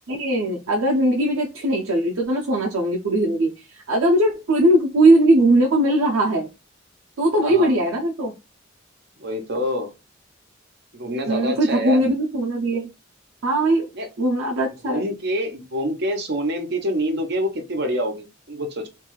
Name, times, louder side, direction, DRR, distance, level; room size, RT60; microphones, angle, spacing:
voice 1, 0.1-6.5 7.2-8.3 11.3-12.9 13.4-13.9 14.2-15.0, right 1 dB, 85° right, 0.6 m, -20 dB
voice 2, 7.4-7.7 9.2-9.9 10.9-12.0 13.9-14.1 14.8-18.9, equal, 55° right, 0.7 m, -26 dB
2.6 x 2.3 x 3.0 m
head